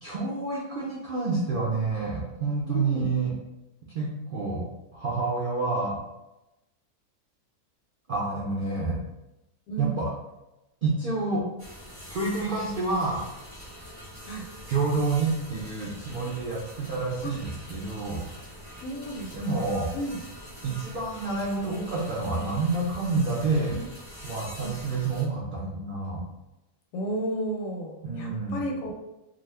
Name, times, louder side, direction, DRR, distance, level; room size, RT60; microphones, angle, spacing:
voice 1, 0.0-3.3 3.9-4.6 4.9-6.0 8.1-9.0 9.8-10.1 10.8-11.4 12.1-13.2 14.7-18.2 19.3-19.9 20.6-23.7 24.2-26.2 28.0-28.6, right 3 dB, 65° right, -6 dB, 0.5 m, -28 dB
voice 2, 2.7-3.1 9.7-10.0 14.2-14.5 17.2-17.3 18.8-19.7 19.9-20.2 23.7-23.8 24.6-24.8 26.9-28.9, right 1 dB, 70° left, 0 dB, 0.9 m, -33 dB
sound 1, 11.6-25.3, equal, 25° right, 0.9 m, -44 dB
2.5 x 2.4 x 3.3 m, 0.95 s
omnidirectional pair, 1.6 m